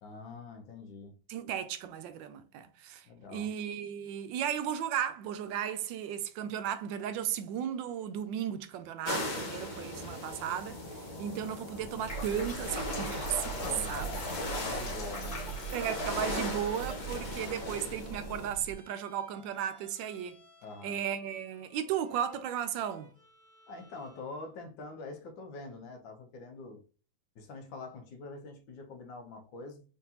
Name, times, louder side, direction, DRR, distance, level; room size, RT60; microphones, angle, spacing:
voice 1, 0.0-1.2 3.1-3.5 13.6-15.4 20.6-21.0 23.7-26.8 27.4-29.8, left 3 dB, 80° left, 1.6 m, -45 dB
voice 2, 1.3-3.1 3.3-14.2 15.7-20.4 20.8-23.1, right 9 dB, 80° right, 1.2 m, -35 dB
sound 1, 9.0-18.5, left 1 dB, 45° left, 0.6 m, -39 dB
sound 2, 11.9-18.8, right 2 dB, 60° left, 2.0 m, -40 dB
Bowed string instrument, 13.9-24.3, left 2 dB, 5° right, 1.0 m, -58 dB
3.9 x 3.6 x 2.8 m
omnidirectional pair, 2.1 m